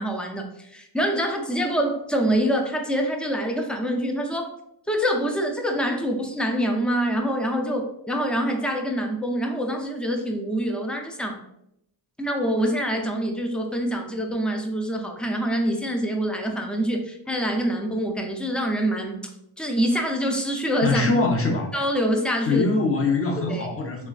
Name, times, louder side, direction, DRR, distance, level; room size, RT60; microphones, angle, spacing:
voice 1, 0.0-4.5 4.9-11.4 12.2-19.3 19.6-21.1 21.7-22.7 23.4-23.7, equal, ahead, 2 dB, 0.3 m, -25 dB
voice 2, 20.8-21.7 22.4-24.1, left 3 dB, 30° left, 0 dB, 0.7 m, -23 dB
3.1 x 2.3 x 2.4 m, 0.77 s
cardioid pair, 65°, 46 cm